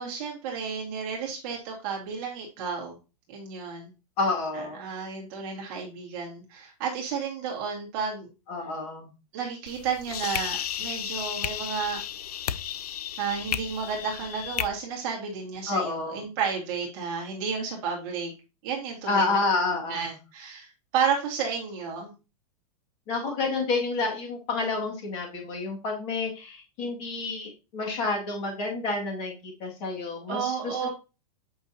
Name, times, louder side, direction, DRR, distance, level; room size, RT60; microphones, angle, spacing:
voice 1, 0.0-3.0 3.3-3.9 4.5-8.3 9.3-12.0 13.2-18.3 18.6-19.4 19.9-22.1 30.2-30.9, right 6 dB, 35° right, -1 dB, 2.0 m, -32 dB
voice 2, 4.2-4.8 8.5-9.1 15.7-16.2 19.1-20.2 23.1-30.9, left 3 dB, 30° left, 1 dB, 2.0 m, -29 dB
sound 1, 9.7-14.7, left 10 dB, 85° left, 0.6 m, -33 dB
8.5 x 5.6 x 2.7 m, 0.29 s
supercardioid pair, 175°, 19 cm